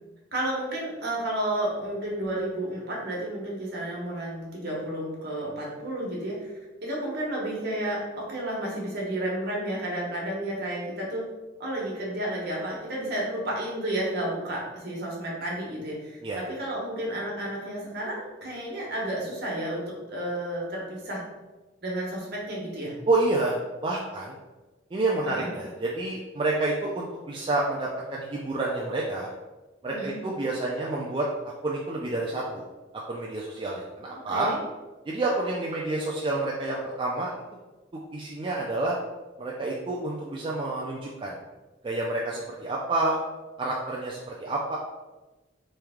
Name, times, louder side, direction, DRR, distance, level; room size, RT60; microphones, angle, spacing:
voice 1, 0.3-6.5 6.8-11.3 11.6-21.2 21.8-22.9 25.2-25.5 29.9-30.2 34.1-34.6, right 1 dB, 55° right, -4 dB, 1.1 m, -31 dB
voice 2, 23.1-24.4 24.9-29.3 29.8-31.3 31.6-32.6 33.1-34.5 35.1-37.3 38.1-39.0 39.4-41.4 41.8-43.2 43.6-44.8, right 2 dB, 25° right, -4 dB, 0.3 m, -29 dB
3.4 x 3.2 x 3.5 m, 1.2 s
head